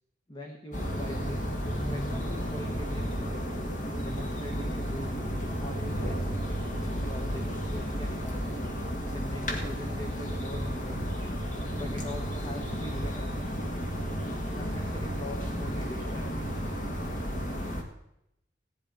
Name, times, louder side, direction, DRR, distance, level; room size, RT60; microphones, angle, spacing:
voice 1, 0.3-1.5 1.9-3.4 4.0-5.2 5.6-8.6 9.1-11.2 11.7-13.3 14.6-16.2, left 1 dB, 25° left, 2 dB, 1.1 m, -42 dB
sound 1, 0.7-17.8, equal, 40° left, 1.8 m, -32 dB
16.5 x 10.5 x 5.0 m, 0.84 s
head